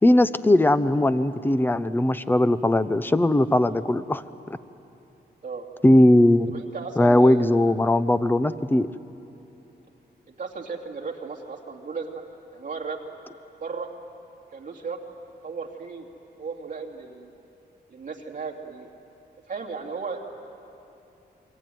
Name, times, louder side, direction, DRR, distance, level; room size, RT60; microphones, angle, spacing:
voice 1, 0.0-4.2 5.8-6.5 7.0-8.9, left 1 dB, 10° left, 13 dB, 0.6 m, -19 dB
voice 2, 6.5-7.5 10.4-12.2 12.5-13.0 13.6-13.9 14.5-15.0 15.4-16.1 16.4-17.3 17.9-18.9 19.5-20.2, right 5 dB, 45° right, 1 dB, 2.6 m, -35 dB
28.5 x 22.5 x 9.3 m, 2.9 s
wide cardioid pair, 170°, 18 cm